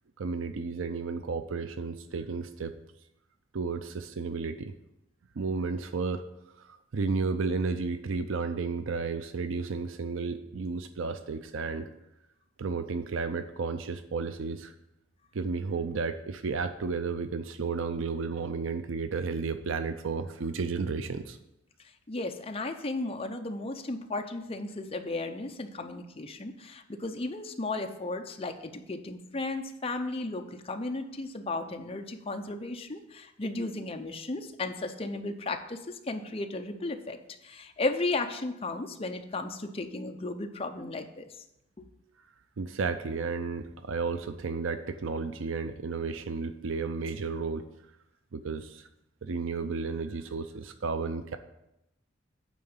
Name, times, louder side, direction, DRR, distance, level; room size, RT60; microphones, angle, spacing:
voice 1, 0.2-2.7 3.5-4.7 5.4-6.2 6.6-11.9 12.6-14.7 15.3-21.4 42.6-47.6 48.3-48.9 49.2-51.4, right 4 dB, 85° right, 9 dB, 0.5 m, -32 dB
voice 2, 22.1-41.4 41.8-41.9, left 2 dB, 30° left, 5 dB, 0.7 m, -35 dB
9.1 x 3.8 x 7.1 m, 0.85 s
head